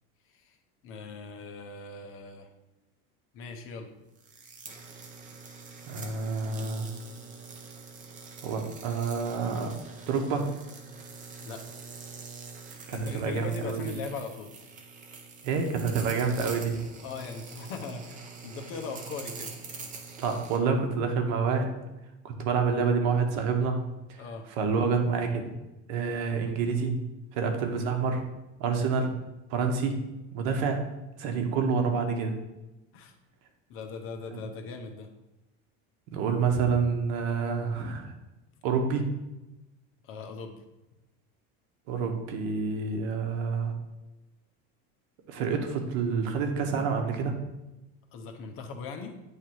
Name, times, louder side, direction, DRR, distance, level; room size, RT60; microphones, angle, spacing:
voice 1, 0.8-2.5 3.3-3.9 11.4-11.6 12.9-14.5 17.0-19.5 24.2-24.4 32.9-33.1 33.7-35.1 40.0-40.6 48.1-49.1, left 4 dB, 45° left, 4 dB, 0.8 m, -39 dB
sound 1, 4.2-20.6, right 4 dB, 25° right, 0.8 m, -45 dB
voice 2, 5.9-6.9 8.4-9.7 10.1-10.5 12.9-13.9 15.4-16.8 20.2-21.7 22.2-23.8 24.1-24.2 24.5-25.4 25.9-27.0 27.3-28.2 28.6-29.1 29.5-30.0 30.3-30.8 31.2-32.3 34.3-34.4 36.1-38.1 38.6-39.1 41.9-43.7 45.3-47.4, right 5 dB, 65° right, 4 dB, 1.1 m, -28 dB
8.7 x 3.3 x 4.6 m, 1.0 s
cardioid pair, 155°, 31 cm